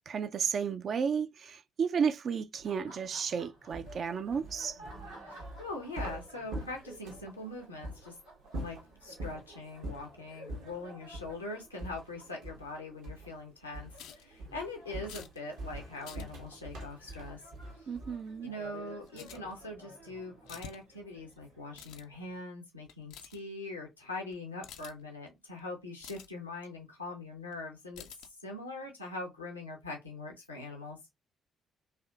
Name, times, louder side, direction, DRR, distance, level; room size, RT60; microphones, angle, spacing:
voice 1, 0.1-4.8 17.9-18.5, right 6 dB, 50° right, 0.3 m, -33 dB
Laughter, 2.5-22.4, right 1 dB, 85° right, 1.4 m, -54 dB
sound 1, 3.7-7.4 7.8-8.0 8.5-9.4 9.8-10.1 10.5-10.7 11.1-11.4 11.8-12.7 13.0-13.4 13.7-14.1 14.4-18.3, right 1 dB, 70° right, 0.8 m, -43 dB
voice 2, 5.3-8.2 8.6-17.4 17.8-17.9 18.4-31.0, left 2 dB, 90° left, 0.7 m, -42 dB
sound 2, 14.0-14.2 15.1-15.4 16.0-16.2 19.1-19.8 20.5-20.8 21.1-21.4 21.7-22.1 22.9-23.4 24.3-24.4 24.6-25.0 25.6-25.7 26.0-26.3 27.5-27.6 27.9-28.3, left 8 dB, 65° left, 0.3 m, -49 dB
3.4 x 2.6 x 2.3 m
figure-of-eight pair, 45°, 0 cm